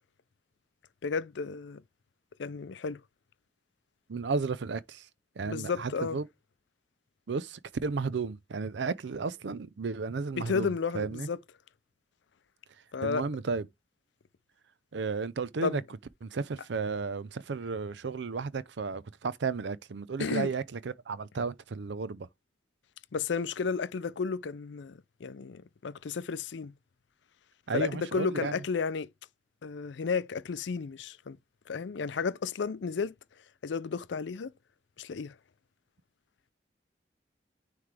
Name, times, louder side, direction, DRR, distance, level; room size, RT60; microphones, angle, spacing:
voice 1, 1.0-1.8 2.4-3.0 5.4-6.2 10.4-11.4 12.9-13.2 15.6-15.8 20.2-20.5 23.1-26.7 27.7-29.1 29.6-31.4 31.7-33.1 33.6-34.5 35.0-35.3, left 5 dB, 80° left, 0.5 m, -32 dB
voice 2, 4.1-5.1 5.4-6.3 7.3-11.3 13.0-13.7 14.9-15.8 16.2-22.3 27.7-28.6, right 4 dB, 80° right, 0.5 m, -33 dB
9.5 x 3.2 x 3.3 m
head